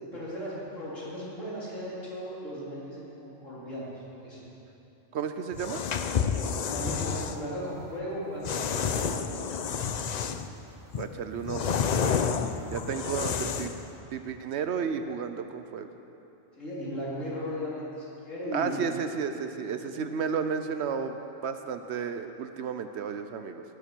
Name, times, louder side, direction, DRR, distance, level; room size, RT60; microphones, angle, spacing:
voice 1, 0.0-3.9 4.2-4.4 6.6-9.4 16.6-19.0 19.8-20.1, equal, 80° left, -8 dB, 3.9 m, -36 dB
voice 2, 5.1-5.8 11.0-11.8 12.7-13.7 14.1-15.9 18.5-21.2 21.4-23.6, right 6 dB, 65° right, 8 dB, 0.8 m, -32 dB
sound 1, 5.5-7.4 8.4-10.5 10.9-13.8, left 6 dB, 60° left, 0.4 m, -30 dB
18.5 x 7.2 x 6.1 m, 3.0 s
omnidirectional pair, 1.3 m